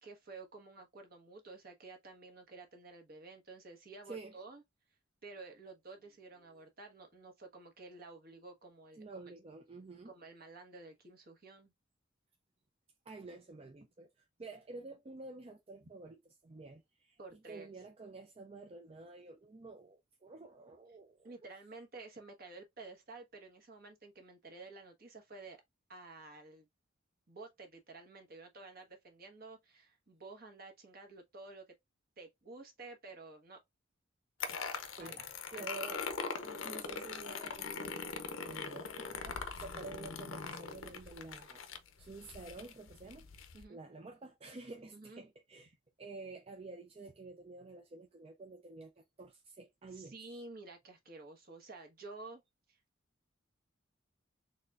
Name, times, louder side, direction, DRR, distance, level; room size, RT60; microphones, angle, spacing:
voice 1, 0.0-4.6 5.2-9.3 10.0-11.7 15.8-15.9 17.2-17.7 21.2-25.6 25.9-26.7 27.3-31.6 32.2-33.6 35.0-35.3 35.5-35.7 43.5-43.8 44.9-45.2 49.9-52.4 52.7-52.8, right 3 dB, 50° right, 1.3 m, -51 dB
voice 2, 4.1-4.4 6.5-6.6 9.0-10.1 13.1-21.3 34.9-36.0 36.4-38.0 38.4-41.6 42.0-50.4, right 3 dB, 30° right, 0.4 m, -50 dB
sound 1, 34.4-43.6, left 5 dB, 85° left, 0.6 m, -42 dB
4.1 x 3.3 x 2.4 m
head